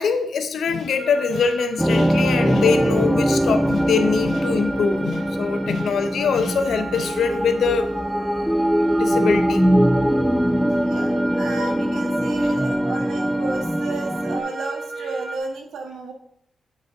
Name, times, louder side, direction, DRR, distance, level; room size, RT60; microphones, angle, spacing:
voice 1, 0.0-7.9 8.9-9.6 12.4-12.5, left 5 dB, 80° left, 0.6 m, -23 dB
sound 1, 0.9-15.4, right 3 dB, 45° right, 1.1 m, -34 dB
sound 2, 1.8-14.4, equal, 5° right, 0.5 m, -22 dB
voice 2, 10.8-16.1, right 3 dB, 90° right, 1.0 m, -33 dB
9.4 x 3.5 x 3.8 m
cardioid pair, 85°, 0 cm